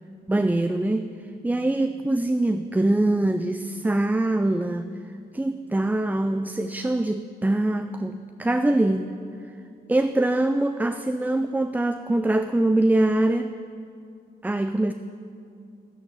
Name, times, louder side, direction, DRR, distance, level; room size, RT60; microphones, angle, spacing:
voice 1, 0.3-1.1 1.4-4.9 5.3-9.2 9.9-13.5 14.4-14.9, right 1 dB, 10° right, 9 dB, 0.4 m, -23 dB
11.5 x 9.6 x 6.9 m, 2.5 s
cardioid pair, 75°, 18 cm